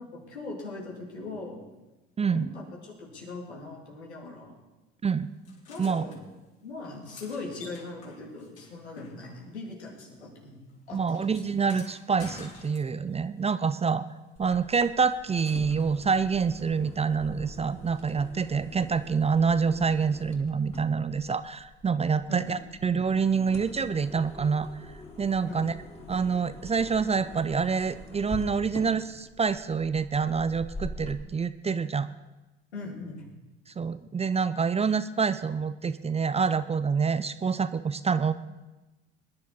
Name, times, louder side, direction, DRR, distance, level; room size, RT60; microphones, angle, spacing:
voice 1, 0.0-1.6 2.3-4.6 5.7-6.2 6.6-11.4 18.6-18.7 22.3-22.6 25.4-25.7 32.7-33.3, left 3 dB, 85° left, -2 dB, 3.1 m, -40 dB
voice 2, 2.2-2.5 5.0-5.3 5.8-6.1 10.9-14.0 14.4-24.7 25.2-25.7 26.1-32.1 33.8-38.3, right 5 dB, 20° right, 14 dB, 0.6 m, -27 dB
sound 1, 5.4-6.2 6.8-9.8 10.0-13.2 14.7-16.0 17.9-18.0, left 4 dB, 50° left, 4.0 m, -51 dB
sound 2, 14.4-31.2, left 2 dB, 20° left, 2.8 m, -45 dB
21.5 x 10.5 x 4.3 m, 1.1 s
hypercardioid pair, 65°, 32 cm